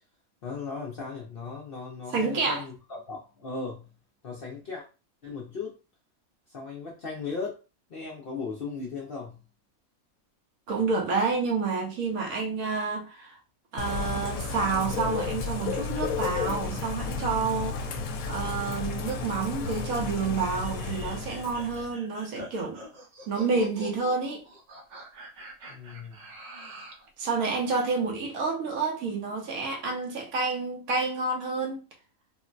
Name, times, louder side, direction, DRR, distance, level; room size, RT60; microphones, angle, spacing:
voice 1, 0.4-3.9 4.2-4.8 5.2-5.7 6.5-7.6 7.9-9.4 25.7-26.2, left 4 dB, 55° left, 0.6 m, -37 dB
voice 2, 2.1-2.6 10.7-13.4 13.7-17.9 18.3-22.8 23.3-24.4 27.2-31.8, right 4 dB, 80° right, 1.1 m, -29 dB
Bird / Rain, 13.8-21.9, left 4 dB, 80° left, 1.0 m, -32 dB
sound 1, 20.5-27.1, right 1 dB, 55° right, 0.5 m, -44 dB
3.6 x 2.0 x 2.4 m
omnidirectional pair, 1.5 m